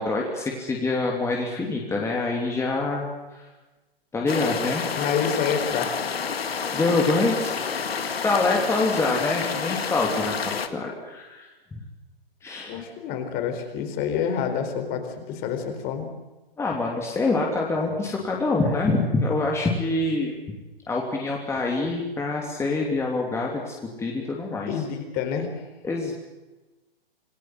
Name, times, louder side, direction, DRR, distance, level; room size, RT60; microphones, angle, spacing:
voice 1, 0.0-3.1 4.1-4.9 6.7-7.6 8.2-11.5 12.4-12.8 16.6-20.3 20.9-24.7 25.8-26.1, left 3 dB, 10° left, -1 dB, 3.0 m, -25 dB
sound 1, 4.3-10.7, left 6 dB, 80° left, 2.2 m, -29 dB
voice 2, 5.0-6.2 12.7-16.1 24.7-25.5, left 7 dB, 30° left, 6 dB, 4.4 m, -28 dB
27.5 x 18.5 x 7.8 m, 1.1 s
hypercardioid pair, 130°, 30 cm